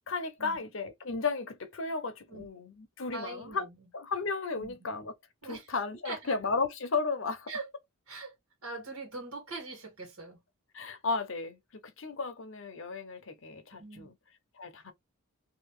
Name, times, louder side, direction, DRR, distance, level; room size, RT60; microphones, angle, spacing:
voice 1, 0.1-3.7 3.9-5.1 5.4-7.5 10.7-14.2 14.6-14.9, left 4 dB, 60° left, 0.8 m, -34 dB
voice 2, 3.1-3.7 4.6-4.8 5.4-5.7 6.1-6.3 7.5-7.6 8.1-8.3 8.6-10.4 13.8-14.1, right 3 dB, 85° right, 1.8 m, -42 dB
2.9 x 2.5 x 3.1 m
head